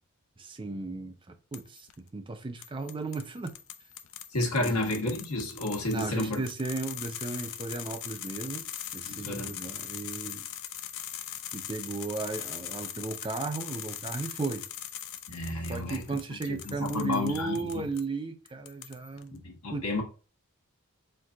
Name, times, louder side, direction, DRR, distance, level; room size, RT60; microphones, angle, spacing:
voice 1, 0.4-3.5 4.6-4.8 5.9-8.7 8.9-10.5 11.5-14.7 15.7-19.4 19.7-19.9, right 3 dB, 25° right, 0.5 m, -35 dB
sound 1, 1.5-1.9 2.6-18.0 18.5-19.2, left 11 dB, 65° left, 0.4 m, -41 dB
voice 2, 4.3-6.4 9.1-9.5 15.3-16.0 16.5-17.9 19.3-20.0, left 2 dB, 80° left, 1.3 m, -31 dB
4.6 x 2.4 x 3.7 m
head